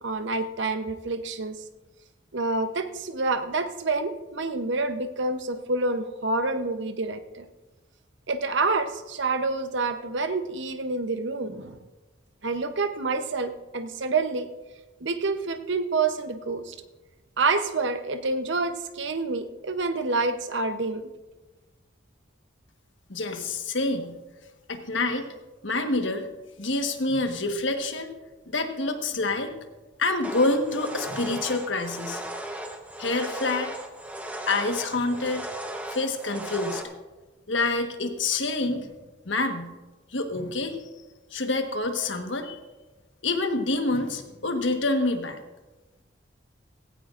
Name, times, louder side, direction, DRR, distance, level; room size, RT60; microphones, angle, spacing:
voice 1, 0.0-1.6 2.3-7.5 8.3-11.8 12.4-14.5 15.0-16.8 17.4-21.0, right 3 dB, 70° right, 9 dB, 0.9 m, -28 dB
voice 2, 23.1-24.1 24.7-25.3 25.6-26.3 26.6-28.1 28.5-29.6 30.0-32.2 33.0-33.7 34.5-35.5 35.9-36.8 37.5-38.9 39.2-39.7 40.1-40.9 41.3-42.6 43.2-45.4, left 2 dB, 75° left, 5 dB, 1.4 m, -27 dB
sound 1, 30.2-36.8, right 1 dB, 10° right, 1.0 m, -36 dB
17.0 x 16.5 x 2.5 m, 1.2 s
head